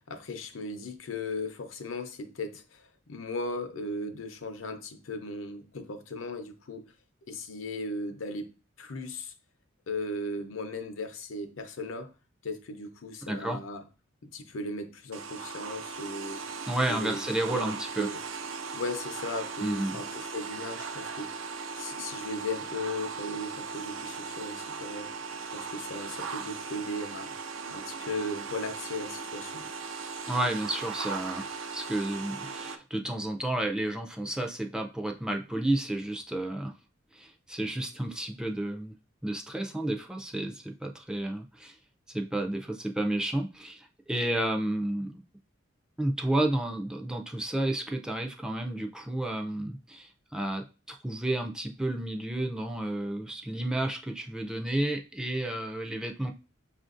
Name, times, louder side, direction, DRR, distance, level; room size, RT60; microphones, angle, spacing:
voice 1, 0.1-6.9 7.3-8.5 8.8-9.3 9.9-12.1 12.4-13.8 14.3-16.4 16.9-17.2 17.5-18.2 18.7-21.3 21.8-25.1 25.5-27.3 27.7-29.6, left 2 dB, 80° left, 0.7 m, -37 dB
voice 2, 13.3-13.6 16.7-18.1 19.6-20.0 30.3-36.7 37.1-38.9 39.2-41.8 42.1-45.2 46.0-56.3, right 1 dB, 5° right, 0.4 m, -31 dB
sound 1, 15.1-32.8, right 5 dB, 75° right, 0.4 m, -38 dB
5.8 x 2.5 x 2.4 m
head